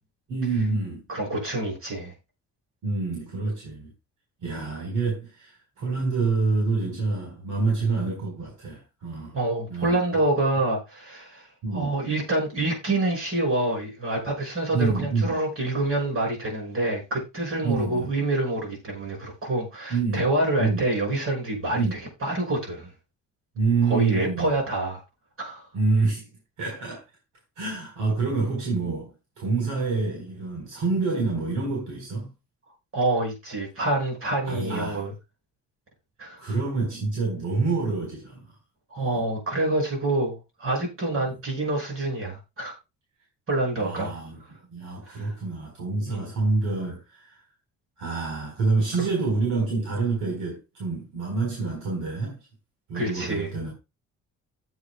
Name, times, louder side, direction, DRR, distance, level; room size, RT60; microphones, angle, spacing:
voice 1, 0.3-1.0 2.8-3.9 4.4-9.3 9.7-10.2 11.6-11.9 14.7-15.3 17.6-18.1 19.9-20.3 20.6-20.8 21.7-21.9 23.5-24.6 25.7-26.2 26.6-27.0 27.6-29.1 29.4-32.3 34.4-35.0 36.4-38.5 39.0-39.2 41.1-41.2 43.8-44.4 44.7-47.4 48.0-52.4 52.9-53.7, right 4 dB, 75° right, 4.2 m, -27 dB
voice 2, 1.1-2.1 9.3-22.9 23.9-25.0 25.4-25.7 32.9-35.1 36.2-36.6 38.9-42.7 43.5-44.1 45.1-45.3 46.1-46.3 49.0-49.1 52.9-53.5, right 2 dB, 45° right, 6.2 m, -27 dB
16.0 x 8.2 x 2.2 m
cardioid pair, 90°, 30 cm